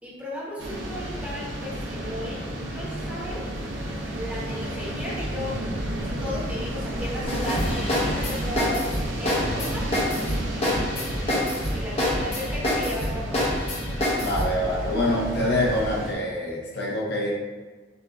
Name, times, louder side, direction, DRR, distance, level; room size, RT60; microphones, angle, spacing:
voice 1, 0.0-3.7 4.1-5.6 6.0-8.9 9.2-9.9 10.9-13.6, left 1 dB, 10° right, -8 dB, 1.1 m, -35 dB
sound 1, 0.6-16.1, right 1 dB, 80° right, 0.7 m, -32 dB
sound 2, 7.3-14.5, left 1 dB, 30° left, 0.8 m, -26 dB
voice 2, 14.2-17.3, left 1 dB, 60° left, -4 dB, 0.9 m, -25 dB
6.8 x 2.6 x 2.3 m, 1.3 s
head